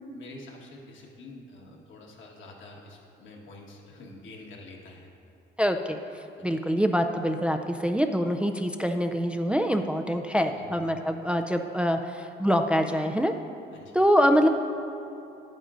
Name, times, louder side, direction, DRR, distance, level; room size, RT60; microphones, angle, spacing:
voice 1, 0.1-5.1 6.4-6.5 10.5-10.8 13.7-14.0, left 2 dB, 75° left, -1 dB, 1.5 m, -47 dB
voice 2, 5.6-13.3 13.9-14.5, equal, 5° right, 5 dB, 0.3 m, -25 dB
10.0 x 9.1 x 2.5 m, 2.8 s
cardioid pair, 90°, 20 cm